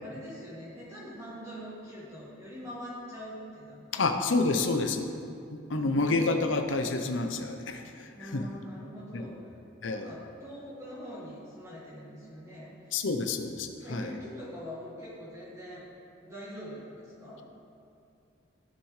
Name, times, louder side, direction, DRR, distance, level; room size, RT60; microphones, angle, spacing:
voice 1, 0.0-4.1 5.7-6.1 8.1-9.3 9.9-13.0 13.8-15.8 16.2-17.4, equal, 15° right, -10 dB, 2.2 m, -43 dB
voice 2, 3.9-5.1 5.5-8.4 9.1-9.3 9.8-10.1 12.9-14.1, left 3 dB, 80° left, 6 dB, 0.7 m, -29 dB
15.5 x 6.5 x 3.2 m, 2.5 s
head